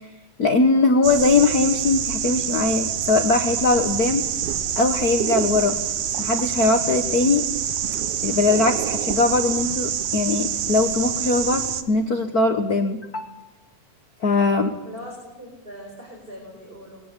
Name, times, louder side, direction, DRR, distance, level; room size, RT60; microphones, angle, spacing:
voice 1, 0.4-4.2 4.8-5.8 6.2-7.4 8.2-13.3 14.2-14.7, left 3 dB, 50° left, 6 dB, 1.2 m, -20 dB
sound 1, 1.0-11.8, right 9 dB, 75° right, 2.6 m, -26 dB
voice 2, 14.8-17.0, equal, 15° right, 0 dB, 4.9 m, -40 dB
22.5 x 17.5 x 8.3 m, 0.98 s
omnidirectional pair, 3.4 m